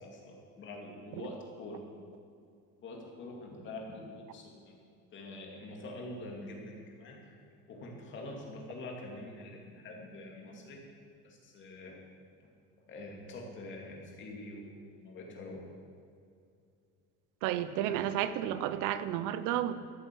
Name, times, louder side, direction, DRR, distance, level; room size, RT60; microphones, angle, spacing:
voice 1, 0.0-1.8 2.8-4.7 5.1-7.4 7.7-10.8 11.2-11.9 12.9-14.6 15.0-15.6, left 2 dB, 35° left, 0 dB, 2.7 m, -45 dB
voice 2, 17.4-19.7, right 11 dB, 65° right, 13 dB, 0.8 m, -32 dB
13.5 x 8.4 x 7.7 m, 2.4 s
cardioid pair, 165°, 33 cm